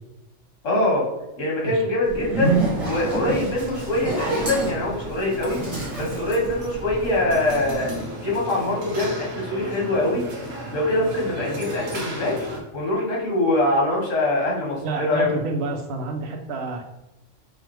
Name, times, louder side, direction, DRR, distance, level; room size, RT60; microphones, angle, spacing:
voice 1, 0.6-1.1 1.4-5.6 5.9-7.9 8.2-10.2 10.7-12.4 12.7-15.3, left 1 dB, 80° left, -3 dB, 1.6 m, -23 dB
Zipper (clothing), 2.0-7.3, right 3 dB, 30° right, 1.1 m, -27 dB
sound 1, 2.4-12.6, right 1 dB, 85° right, 1.4 m, -35 dB
voice 2, 14.7-16.8, right 3 dB, 65° right, 3 dB, 0.9 m, -29 dB
5.0 x 2.4 x 3.0 m, 0.98 s
omnidirectional pair, 1.3 m